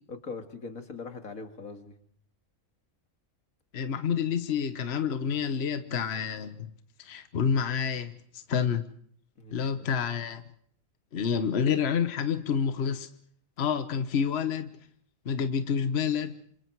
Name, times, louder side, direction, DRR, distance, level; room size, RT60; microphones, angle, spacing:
voice 1, 0.1-2.0 9.4-9.9, left 4 dB, 90° left, 6 dB, 2.5 m, -41 dB
voice 2, 3.7-6.7 7.0-8.9 9.5-10.4 11.1-13.1 13.6-14.7 15.2-16.3, left 7 dB, 50° left, 10 dB, 1.3 m, -28 dB
27.0 x 27.0 x 4.7 m, 0.64 s
omnidirectional pair, 1.4 m